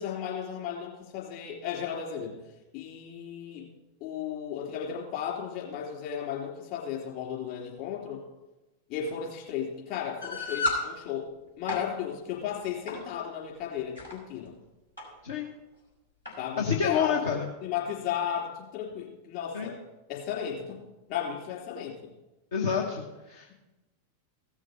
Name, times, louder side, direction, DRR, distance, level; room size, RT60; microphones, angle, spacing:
voice 1, 0.0-2.4 2.7-3.7 4.0-8.2 8.9-14.5 16.4-17.2 17.6-19.8 20.1-20.8 21.1-22.0, left 8 dB, 45° left, -2 dB, 3.8 m, -34 dB
sound 1, 10.2-10.8 11.5-11.9 12.9-13.1 13.8-14.1 15.0-15.1 15.4-15.5 16.2-16.4, left 2 dB, 90° left, 4.6 m, -31 dB
voice 2, 16.6-17.5 19.5-19.7 22.5-23.6, left 7 dB, 65° left, 0 dB, 1.2 m, -29 dB
16.5 x 6.4 x 5.3 m, 1.0 s
figure-of-eight pair, 90°, 0 cm